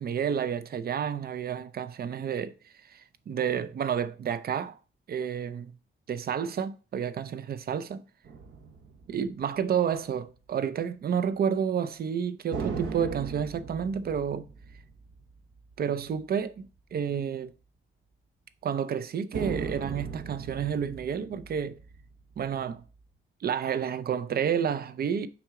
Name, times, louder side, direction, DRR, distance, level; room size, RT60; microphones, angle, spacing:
voice 1, 0.0-2.5 2.8-4.8 5.1-5.7 6.1-8.0 9.1-14.5 15.8-17.5 18.6-21.8 22.4-22.8 23.4-25.3, right 8 dB, 50° right, 0.5 m, -30 dB
sound 1, 8.2-10.2 12.5-16.2 16.6-16.7 19.3-23.0, right 5 dB, 65° right, 1.1 m, -39 dB
6.0 x 4.7 x 3.6 m
cardioid pair, 125°, 21 cm